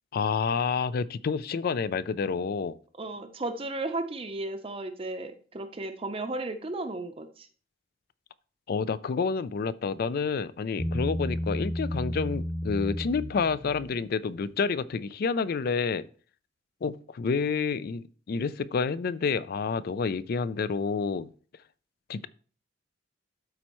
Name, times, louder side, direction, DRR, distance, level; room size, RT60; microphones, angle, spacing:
voice 1, 0.1-2.8 8.7-16.1 16.8-21.3 22.1-22.3, left 5 dB, 50° left, 16 dB, 0.3 m, -29 dB
voice 2, 3.0-7.5, right 2 dB, 30° right, 7 dB, 0.6 m, -34 dB
Bass guitar, 10.8-14.2, left 1 dB, 30° left, 1.5 m, -32 dB
12.5 x 4.3 x 3.0 m, 0.42 s
head